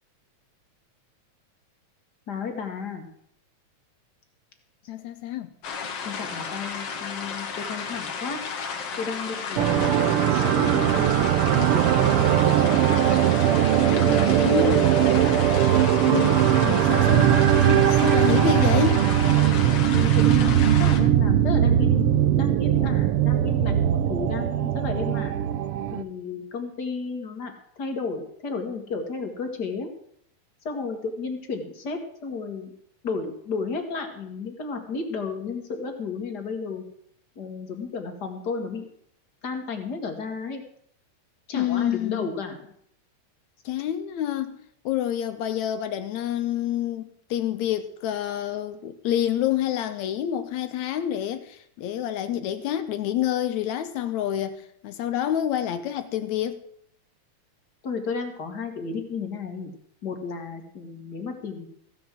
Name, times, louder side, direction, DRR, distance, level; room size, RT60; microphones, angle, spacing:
voice 1, 2.3-3.1 6.0-8.4 9.0-11.2 11.5-13.1 13.9-14.7 19.9-25.3 25.9-27.5 27.8-29.9 30.6-32.7 33.0-36.8 37.4-38.9 39.4-40.6 41.5-42.6 57.8-59.7 60.0-61.7, left 4 dB, 40° left, 2.0 m, -33 dB
voice 2, 4.9-5.5 14.4-14.9 16.0-19.1 41.5-42.3 43.7-44.6 44.9-56.6, left 11 dB, 75° left, 2.1 m, -28 dB
sound 1, 5.6-21.0, left 5 dB, 60° left, 2.3 m, -33 dB
sound 2, 9.6-26.0, right 11 dB, 80° right, 1.2 m, -20 dB
15.0 x 7.1 x 7.5 m
omnidirectional pair, 3.4 m